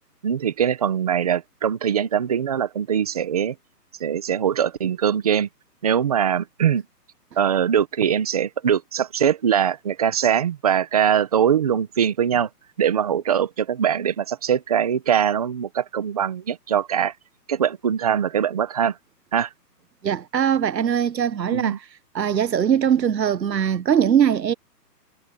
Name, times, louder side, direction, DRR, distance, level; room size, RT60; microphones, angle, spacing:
voice 1, 0.2-3.5 4.0-5.5 5.8-6.8 7.4-12.5 12.8-17.1 17.5-18.9 19.3-19.5 21.5-21.8, right 8 dB, 25° right, 1.2 m, -22 dB
voice 2, 20.0-21.8 22.1-24.5, right 9 dB, 85° right, 1.1 m, -21 dB
hypercardioid pair, 170°, 49 cm